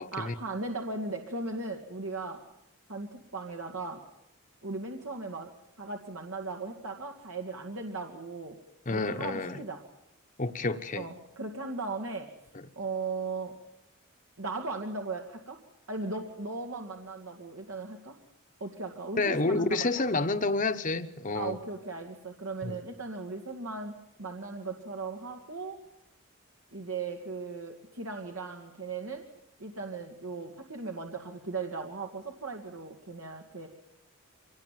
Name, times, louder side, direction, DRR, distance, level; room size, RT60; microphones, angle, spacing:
voice 1, 0.1-2.4 2.9-4.0 4.6-5.5 5.8-8.6 8.9-9.8 10.9-12.3 12.8-13.6 14.4-15.6 15.9-18.2 18.6-19.9 21.3-23.9 24.2-25.8 26.7-29.2 29.6-33.7, right 3 dB, 80° right, 2 dB, 2.2 m, -37 dB
voice 2, 8.9-9.6 10.4-11.1 19.2-21.6 22.6-22.8, left 3 dB, 40° left, 7 dB, 1.0 m, -29 dB
25.0 x 18.5 x 9.3 m, 0.83 s
head